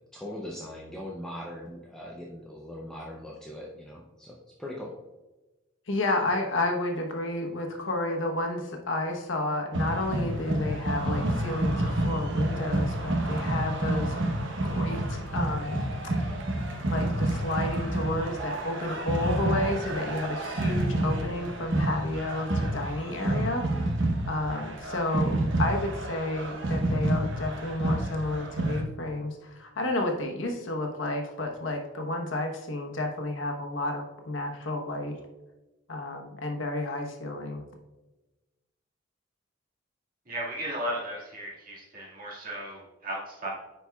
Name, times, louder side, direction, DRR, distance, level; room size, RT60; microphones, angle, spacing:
voice 1, 0.0-5.0, left 1 dB, 5° left, -4 dB, 0.6 m, -40 dB
voice 2, 5.9-14.2 14.6-16.1 16.8-24.0 24.2-35.2 35.9-37.6, left 2 dB, 70° left, 2 dB, 1.0 m, -31 dB
sound 1, 9.7-28.8, right 1 dB, 70° right, 0.9 m, -29 dB
voice 3, 40.3-43.5, right 1 dB, 45° right, -4 dB, 1.9 m, -35 dB
10.5 x 4.4 x 2.3 m, 1.1 s
head